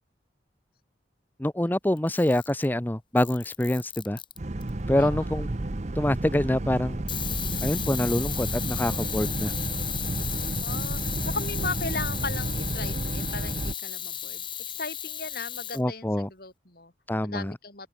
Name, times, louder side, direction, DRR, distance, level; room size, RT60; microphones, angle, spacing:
voice 1, 1.4-4.2 4.9-5.5 5.9-7.0 7.6-9.5 15.7-16.3 17.1-17.5, left 1 dB, 10° left, 0.7 m, -26 dB
Camera, 2.0-2.7 3.2-4.7 7.1-15.8, left 9 dB, 25° left, 5.0 m, -34 dB
Boat Water vehicle, 4.4-13.7, right 2 dB, 40° right, 0.8 m, -31 dB
voice 2, 4.9-5.3 10.6-16.9 17.2-17.9, left 3 dB, 55° left, 7.0 m, -37 dB
open air
head